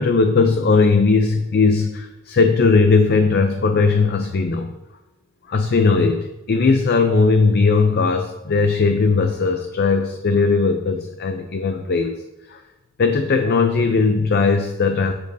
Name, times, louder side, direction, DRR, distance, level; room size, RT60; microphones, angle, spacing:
voice 1, 0.0-4.7 5.5-12.2 12.5-12.6 13.0-15.1, left 4 dB, 50° left, 6 dB, 0.5 m, -18 dB
14.5 x 5.2 x 2.7 m, 0.95 s
head